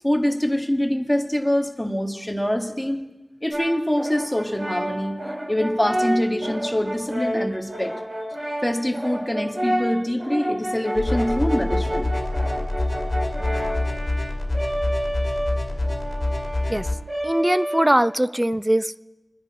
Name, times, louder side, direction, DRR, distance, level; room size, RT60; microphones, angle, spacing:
voice 1, 0.0-3.0 3.4-5.2 5.5-7.9 8.6-12.1, equal, 10° left, 3 dB, 1.6 m, -24 dB
Brass instrument, 3.5-18.3, equal, 50° right, 3.9 m, -29 dB
sound 1, 11.0-16.9, left 2 dB, 50° left, 2.2 m, -26 dB
voice 2, 17.2-19.0, right 1 dB, 15° right, 15 dB, 0.4 m, -21 dB
26.5 x 10.5 x 4.2 m, 1.1 s
wide cardioid pair, 65°, 0 cm